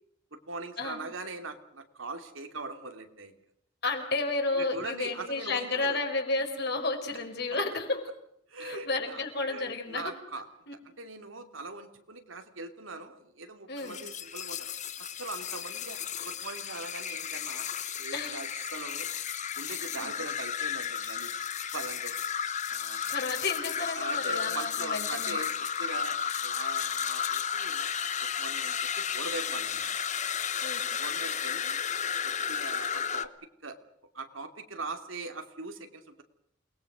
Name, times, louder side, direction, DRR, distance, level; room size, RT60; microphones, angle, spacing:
voice 1, 0.3-3.4 4.5-6.0 8.5-9.2 9.5-10.4 11.0-14.7 15.0-19.1 19.6-21.5 21.7-22.2 22.7-23.0 23.9-27.9 28.4-29.9 31.0-31.8 32.2-33.3 33.6-33.8 34.1-36.2, right 3 dB, 90° right, 6 dB, 3.0 m, -41 dB
voice 2, 3.8-8.0 8.6-10.1 10.7-10.8 13.7-14.0 18.1-18.4 20.0-20.1 23.1-25.4 30.6-30.8, left 3 dB, 55° left, 4 dB, 5.3 m, -32 dB
sound 1, 13.8-33.3, left 8 dB, 35° left, 1.0 m, -33 dB
29.0 x 20.5 x 6.3 m, 0.75 s
head